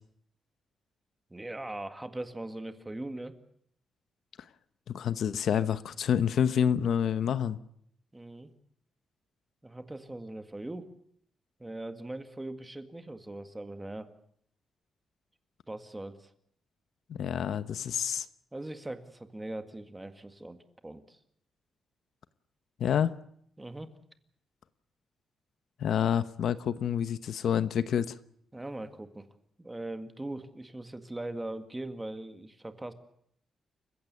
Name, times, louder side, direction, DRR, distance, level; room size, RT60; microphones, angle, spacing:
voice 1, 1.3-3.4 8.1-8.5 9.6-10.9 11.6-14.1 15.7-16.3 18.5-21.2 23.6-23.9 28.5-29.3 29.6-32.9, right 1 dB, 10° right, 8 dB, 1.9 m, -40 dB
voice 2, 4.9-7.6 17.1-18.3 22.8-23.1 25.8-28.1, left 8 dB, 65° left, 13 dB, 1.0 m, -28 dB
29.5 x 16.0 x 8.2 m, 0.68 s
wide cardioid pair, 145°, 0 cm